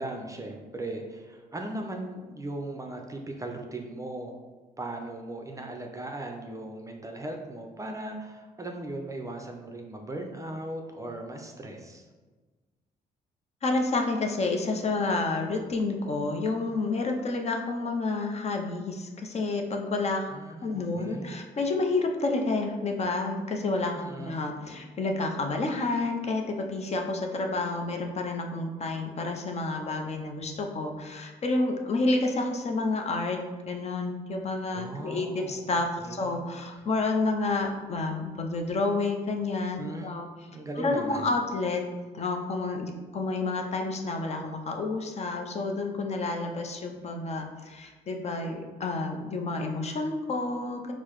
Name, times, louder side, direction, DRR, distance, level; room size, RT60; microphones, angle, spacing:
voice 1, 0.0-4.4 4.8-12.1 20.3-21.3 24.0-24.4 34.7-35.7 36.0-36.4 39.8-40.2 40.5-41.3, right 1 dB, 20° right, 3 dB, 0.5 m, -38 dB
voice 2, 13.6-20.3 20.6-33.4 33.7-40.3 40.8-41.8 42.1-50.9, left 3 dB, 40° left, 3 dB, 0.5 m, -29 dB
4.5 x 2.0 x 3.0 m, 1.3 s
cardioid pair, 75°, 17 cm